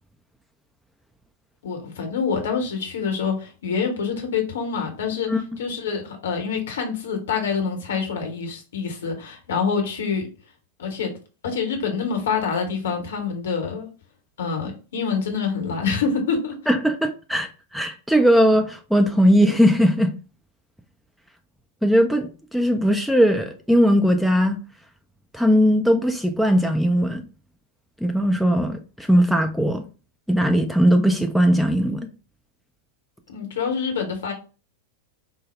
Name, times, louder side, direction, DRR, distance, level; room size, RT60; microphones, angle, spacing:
voice 1, 1.6-10.3 10.8-11.1 11.4-13.9 14.4-16.6 33.3-34.3, left 5 dB, 60° left, 0.9 m, -26 dB
voice 2, 5.3-5.6 16.7-20.1 21.8-24.6 25.3-27.2 28.0-29.8 30.3-32.1, equal, ahead, 0.3 m, -19 dB
3.9 x 2.0 x 3.1 m
figure-of-eight pair, 90°, 0 cm